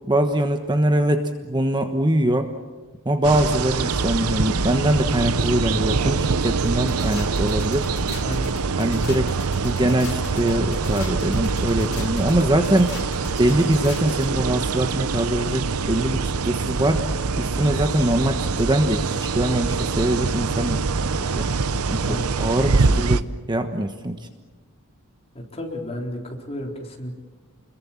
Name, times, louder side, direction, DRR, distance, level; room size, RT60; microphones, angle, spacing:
voice 1, 0.1-2.5 3.0-7.9 8.8-9.3 9.6-12.9 13.4-17.0 17.4-20.8 21.3-21.5 21.9-23.2 23.5-24.3, right 1 dB, 20° right, 6 dB, 1.3 m, -22 dB
sound 1, 3.2-23.2, right 4 dB, 75° right, 0.8 m, -24 dB
sound 2, 6.6-14.3, left 4 dB, 90° left, 3.9 m, -39 dB
voice 2, 8.2-8.5 22.1-22.3 25.3-27.2, left 1 dB, 30° left, 1 dB, 4.0 m, -32 dB
30.0 x 22.5 x 7.3 m, 1.3 s
head